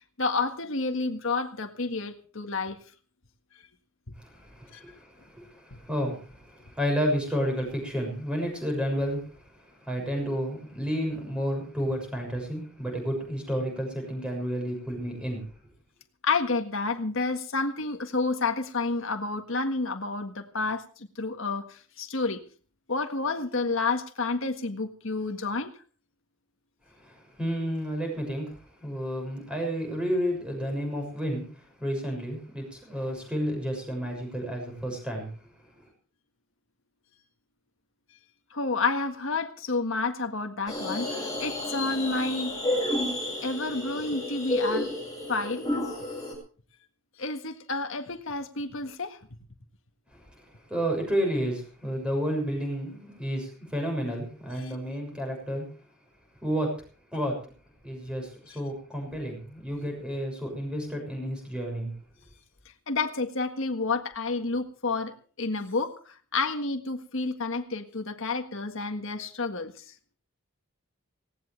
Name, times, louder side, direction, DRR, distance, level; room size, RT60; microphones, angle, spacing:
voice 1, 0.2-2.8 4.7-4.8 16.2-22.4 22.9-25.7 38.5-42.5 43.4-44.9 45.3-45.6 47.2-49.2 54.6-54.7 62.9-66.0 66.3-69.7, left 3 dB, 60° left, 5 dB, 1.7 m, -30 dB
voice 2, 4.2-9.2 9.8-15.4 27.0-35.3 50.1-50.2 50.7-55.6 56.4-56.7 57.1-57.3 57.8-61.9, equal, 5° right, 2 dB, 6.6 m, -31 dB
sound 1, 40.7-46.3, left 1 dB, 15° left, 7.0 m, -31 dB
19.0 x 18.0 x 3.4 m, 0.40 s
head